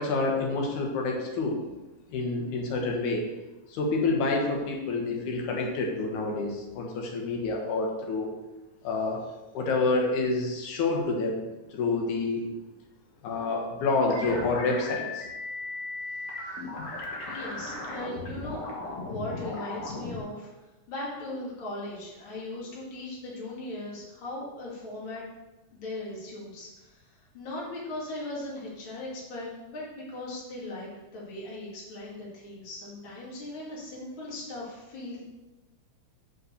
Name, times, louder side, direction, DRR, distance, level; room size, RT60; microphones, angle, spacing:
voice 1, 0.0-1.6 2.1-3.3 3.7-8.3 8.8-9.2 9.5-12.4 13.2-15.3, left 3 dB, 75° left, 1 dB, 2.7 m, -28 dB
sound 1, 14.1-20.2, left 2 dB, 60° left, 2.4 m, -36 dB
voice 2, 17.2-18.7 19.1-20.5 20.9-25.2 25.7-35.2, left 1 dB, 45° left, -5 dB, 2.5 m, -38 dB
5.9 x 5.4 x 6.4 m, 1.1 s
omnidirectional pair, 3.5 m